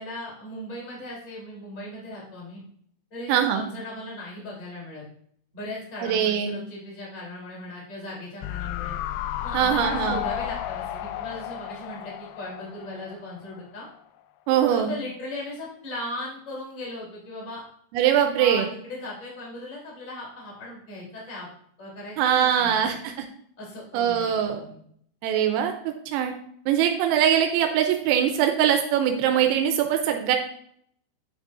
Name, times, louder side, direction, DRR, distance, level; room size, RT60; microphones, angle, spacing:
voice 1, 0.0-2.6 3.1-5.0 5.5-8.9 9.4-13.9 14.7-17.6 18.4-21.5 21.8-22.9 23.6-24.8, left 1 dB, 20° left, -4 dB, 2.6 m, -38 dB
voice 2, 3.3-3.6 6.0-6.6 9.5-10.2 14.5-14.9 17.9-18.7 22.2-23.1 23.9-24.6 25.2-26.3 26.7-30.4, right 9 dB, 85° right, 5 dB, 3.4 m, -22 dB
sound 1, 8.4-13.7 13.9-14.0, left 12 dB, 85° left, 2.8 m, -33 dB
10.0 x 8.0 x 2.5 m, 0.64 s
omnidirectional pair, 6.0 m